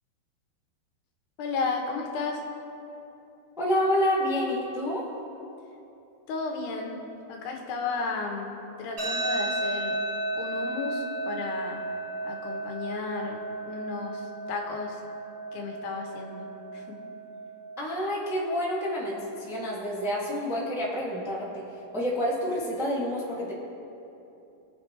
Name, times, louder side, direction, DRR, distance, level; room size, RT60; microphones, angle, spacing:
voice 1, 1.4-2.4 6.3-7.0 7.3-10.0 10.3-11.8 12.2-15.0 15.5-16.5 16.7-17.0, left 4 dB, 80° left, 1 dB, 3.2 m, -33 dB
voice 2, 3.6-5.0 17.8-21.6 21.9-23.5, equal, ahead, -6 dB, 1.3 m, -28 dB
sound 1, 9.0-22.0, right 2 dB, 20° right, 2.6 m, -35 dB
23.0 x 8.2 x 3.3 m, 2.8 s
omnidirectional pair, 4.6 m